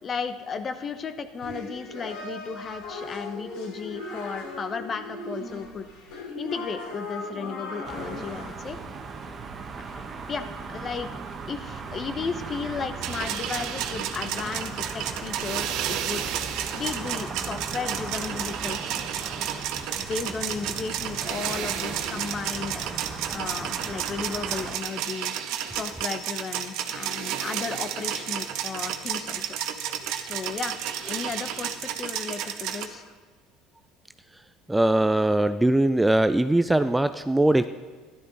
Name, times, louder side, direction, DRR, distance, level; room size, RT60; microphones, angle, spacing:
voice 1, 0.0-5.9 6.4-8.8 9.8-11.1 11.5-16.2 16.7-19.0 19.3-19.8 20.1-25.3 25.7-29.5 30.3-30.8 31.0-33.1, left 5 dB, 35° left, 10 dB, 0.9 m, -34 dB
sound 1, 1.4-8.5, left 2 dB, 75° left, 4.1 m, -37 dB
sound 2, 7.8-24.7, right 4 dB, 35° right, 1.3 m, -37 dB
sound 3, 13.0-32.9, right 10 dB, 70° right, 0.9 m, -32 dB
voice 2, 34.7-37.7, right 1 dB, 10° right, 10 dB, 0.4 m, -21 dB
13.5 x 11.5 x 4.0 m, 1.4 s
supercardioid pair, 100°, 0 cm